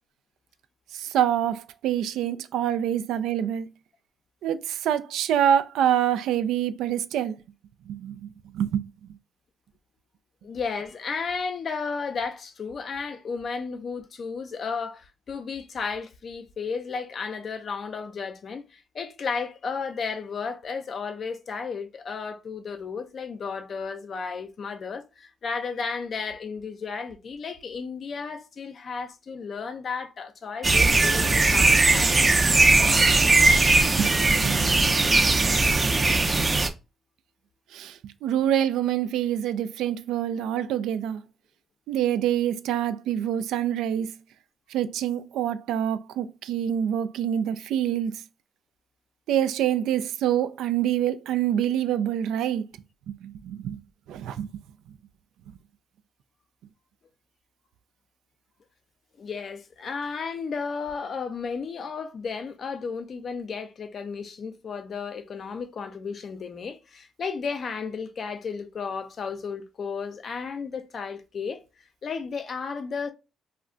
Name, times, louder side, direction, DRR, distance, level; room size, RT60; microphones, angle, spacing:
voice 1, 0.9-3.7 4.4-7.4 7.9-8.8 34.0-34.8 35.4-35.5 37.7-41.2 41.9-44.2 44.7-48.2 49.3-52.7 53.1-53.8 54.1-54.5, right 10 dB, 85° right, 0.3 m, -26 dB
voice 2, 10.4-32.4 59.2-71.6 72.0-73.1, left 5 dB, 50° left, 0.5 m, -33 dB
sound 1, 30.6-36.7, right 3 dB, 25° right, 0.5 m, -19 dB
2.3 x 2.1 x 3.7 m
cardioid pair, 90°, 0 cm